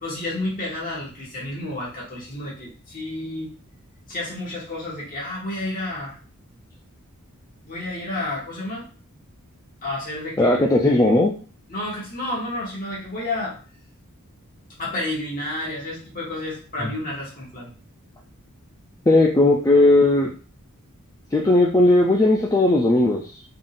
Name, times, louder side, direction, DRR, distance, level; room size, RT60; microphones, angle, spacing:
voice 1, 0.0-3.5 4.1-6.2 7.6-8.8 9.8-10.6 11.7-13.5 14.8-17.7, left 1 dB, 40° left, -4 dB, 1.7 m, -30 dB
voice 2, 10.4-11.3 16.8-16.9 19.1-20.3 21.3-23.4, left 2 dB, 15° left, -1 dB, 0.4 m, -17 dB
3.7 x 3.7 x 2.5 m, 0.38 s
head